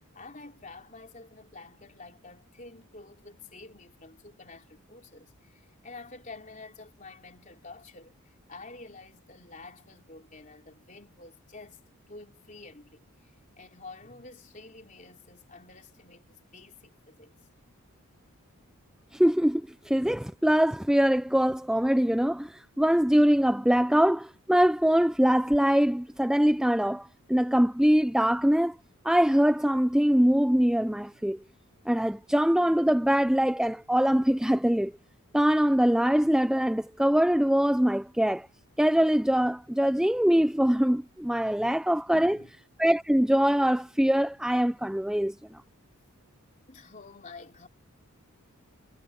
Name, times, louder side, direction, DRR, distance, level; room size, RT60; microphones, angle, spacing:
voice 1, 0.1-17.3 41.6-41.7 42.1-42.5 46.7-47.7, left 3 dB, 35° left, 3.8 m, -49 dB
voice 2, 19.1-28.8 29.0-31.4 31.9-34.9 35.3-38.5 38.8-42.4 42.8-45.6, equal, 5° right, 0.4 m, -23 dB
head